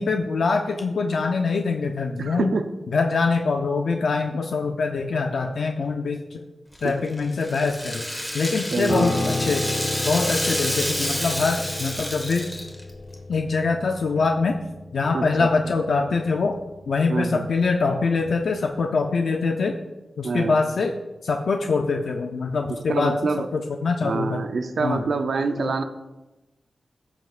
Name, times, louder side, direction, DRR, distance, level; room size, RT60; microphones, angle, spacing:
voice 1, 0.0-2.5 2.9-6.4 6.8-8.1 8.3-9.7 10.1-12.5 13.3-14.6 14.9-16.6 16.9-19.8 20.2-21.0 21.2-24.4 24.8-25.0 25.6-25.7, left 4 dB, 75° left, 4 dB, 0.5 m, -24 dB
voice 2, 2.2-2.7 6.8-7.0 8.7-9.3 15.1-15.5 17.1-17.4 20.2-20.6 22.9-23.5 24.0-25.8, right 4 dB, 70° right, 8 dB, 0.5 m, -26 dB
Rattle (instrument), 6.7-12.9, equal, 5° left, 1.5 m, -29 dB
Piano, 8.9-18.3 18.5-18.8, left 2 dB, 35° left, 1.4 m, -33 dB
14.0 x 6.0 x 2.4 m, 1.0 s
wide cardioid pair, 110°, 0 cm